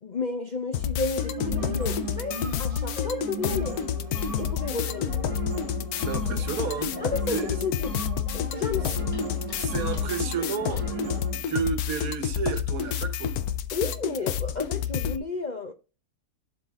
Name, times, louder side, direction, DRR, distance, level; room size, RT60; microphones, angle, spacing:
voice 1, 0.0-3.8 4.4-5.1 6.8-7.9 8.3-8.9 13.7-15.7, left 4 dB, 50° left, 0.5 m, -32 dB
sound 1, 0.7-15.2, left 9 dB, 80° left, 1.2 m, -29 dB
sound 2, 1.2-11.4, right 2 dB, 25° right, 1.5 m, -36 dB
voice 2, 5.9-6.9 7.3-7.5 8.8-9.0 9.6-13.4, right 6 dB, 70° right, 1.6 m, -32 dB
sound 3, 6.7-7.1 8.9-11.0, left 1 dB, 30° left, 2.7 m, -46 dB
11.5 x 3.9 x 3.5 m
omnidirectional pair, 1.6 m